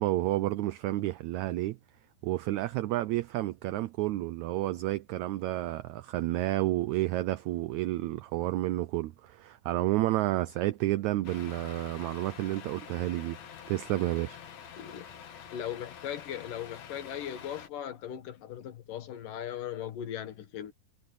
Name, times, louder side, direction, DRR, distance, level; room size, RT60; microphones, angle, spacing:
voice 1, 0.0-1.8 2.2-13.4 13.7-14.4, right 16 dB, 90° right, 1.6 m, -30 dB
Truck, 11.2-17.7, left 8 dB, 55° left, 2.6 m, -47 dB
voice 2, 15.5-20.7, left 10 dB, 70° left, 3.2 m, -38 dB
omnidirectional pair, 4.0 m